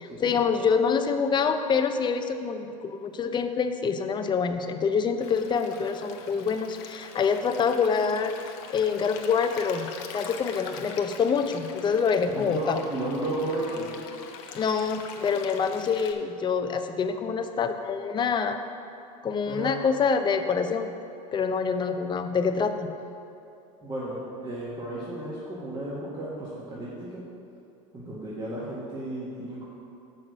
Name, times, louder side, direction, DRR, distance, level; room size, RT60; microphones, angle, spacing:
voice 1, 0.0-8.3 8.7-9.9 10.1-12.8 14.5-18.6 19.2-20.9 21.3-22.9, left 5 dB, 25° left, 7 dB, 0.6 m, -26 dB
Stream, 5.2-16.1, left 7 dB, 65° left, 0.8 m, -43 dB
voice 2, 12.3-13.9 19.5-19.7 23.8-27.2 27.9-29.7, right 1 dB, 25° right, -8 dB, 1.8 m, -33 dB
6.3 x 5.9 x 6.4 m, 2.7 s
hypercardioid pair, 100°, 18 cm